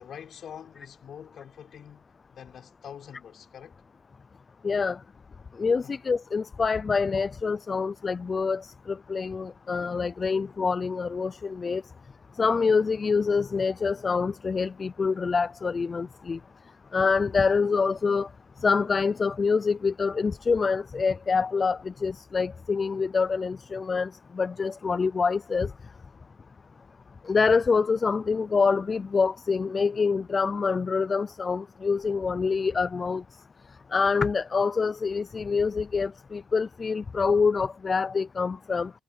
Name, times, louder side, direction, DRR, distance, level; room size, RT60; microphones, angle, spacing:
voice 1, 0.0-3.8 5.8-6.0 11.8-11.9, left 8 dB, 60° left, 5.9 m, -45 dB
voice 2, 4.6-5.0 5.6-11.8 12.4-16.4 16.9-18.3 18.6-25.7 27.2-33.2 33.9-38.9, left 5 dB, 35° left, 0.4 m, -26 dB
cardioid pair, 90°, 0 cm